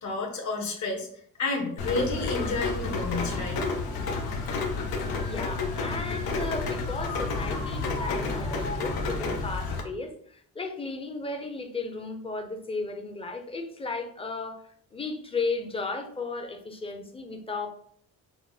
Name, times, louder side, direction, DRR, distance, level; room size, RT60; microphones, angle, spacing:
voice 1, 0.0-1.1 1.4-3.6, left 3 dB, 50° left, 1.3 m, -30 dB
Rain, 1.8-9.8, left 3 dB, 85° left, 0.9 m, -30 dB
voice 2, 5.1-14.6 14.9-17.7, left 3 dB, 15° left, 0.6 m, -35 dB
5.7 x 2.1 x 4.0 m
cardioid pair, 135°, 36 cm